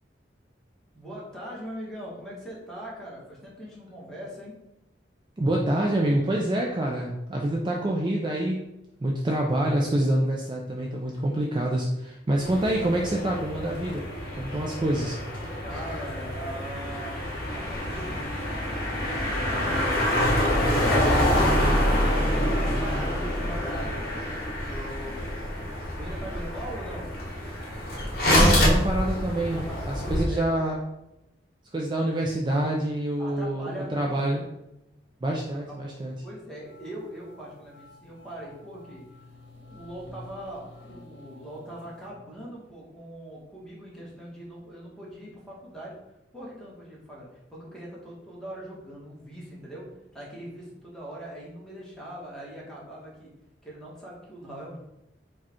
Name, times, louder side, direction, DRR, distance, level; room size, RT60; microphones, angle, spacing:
voice 1, 0.9-4.5 15.6-17.2 17.5-18.3 18.8-20.5 22.0-24.3 24.7-25.7 25.9-27.1 29.5-30.6 32.0-32.2 33.2-34.4 35.5-35.6 36.2-39.0 39.6-45.9 46.3-49.9 50.1-53.3 53.6-54.8, right 1 dB, 5° left, -6 dB, 1.3 m, -41 dB
voice 2, 5.4-8.7 9.0-14.1 14.3-15.2 28.3-30.8 31.7-34.4 35.2-36.1, right 1 dB, 25° right, -1 dB, 0.4 m, -26 dB
sound 1, 12.4-30.3, left 1 dB, 55° left, 1.1 m, -26 dB
sound 2, 36.6-42.1, left 2 dB, 75° left, 0.9 m, -50 dB
4.8 x 2.3 x 4.3 m, 0.91 s
head